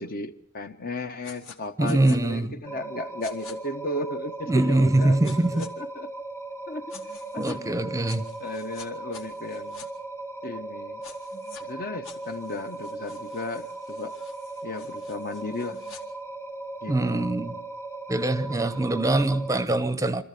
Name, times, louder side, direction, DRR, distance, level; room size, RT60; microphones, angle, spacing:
voice 1, 0.0-6.1 6.7-7.0 7.3-8.1 8.4-9.9 10.4-11.0 11.6-14.2 14.6-15.8 16.8-17.3, left 2 dB, 45° left, 1.1 m, -35 dB
sound 1, 1.2-1.6 1.8-2.2 3.2-3.5 5.2-5.7 6.9-7.6 8.1-9.9 11.0-11.6 12.0-16.0, left 6 dB, 65° left, 2.4 m, -48 dB
voice 2, 1.8-2.6 4.5-5.7 7.4-8.3 16.9-17.6 18.1-20.2, right 2 dB, 15° right, 0.8 m, -23 dB
sound 2, 2.6-19.7, right 2 dB, 15° left, 0.9 m, -38 dB
26.0 x 14.0 x 8.4 m
head